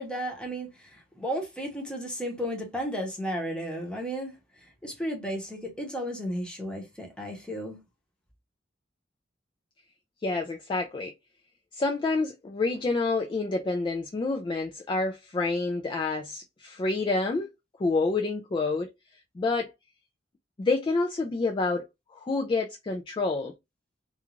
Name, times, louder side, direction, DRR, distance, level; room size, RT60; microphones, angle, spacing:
voice 1, 0.0-4.3 4.8-7.8, equal, 5° left, 0.8 m, -33 dB
voice 2, 10.2-11.1 11.7-17.5 17.8-18.9 19.4-19.7 20.6-21.9 22.1-23.5, left 3 dB, 25° left, 0.3 m, -28 dB
2.4 x 2.3 x 2.9 m
head